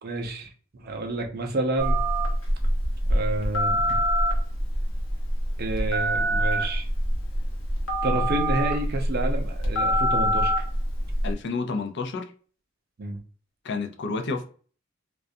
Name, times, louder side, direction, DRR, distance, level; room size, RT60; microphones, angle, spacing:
voice 1, 0.0-2.0 3.1-4.0 5.6-6.9 8.0-10.5 13.0-13.2, right 2 dB, 50° right, 0.5 m, -29 dB
Telephone, 1.8-11.3, equal, 80° left, 0.8 m, -25 dB
voice 2, 11.2-12.3 13.6-14.4, left 4 dB, 60° left, 0.4 m, -30 dB
2.3 x 2.2 x 2.6 m
head